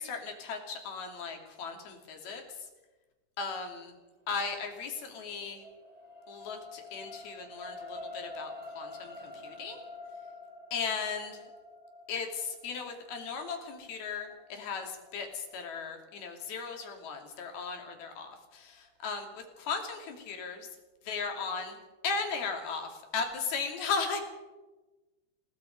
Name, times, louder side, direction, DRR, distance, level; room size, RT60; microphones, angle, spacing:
voice 1, 0.0-2.4 3.4-3.9 4.3-5.6 6.3-9.8 10.7-11.4 12.1-20.7 21.0-21.8 22.0-24.2, left 5 dB, 65° left, 3 dB, 4.4 m, -36 dB
sound 1, 4.9-17.3 17.8-18.0, left 2 dB, 45° right, 0.5 m, -48 dB
28.0 x 18.5 x 5.3 m, 1.2 s
omnidirectional pair, 5.0 m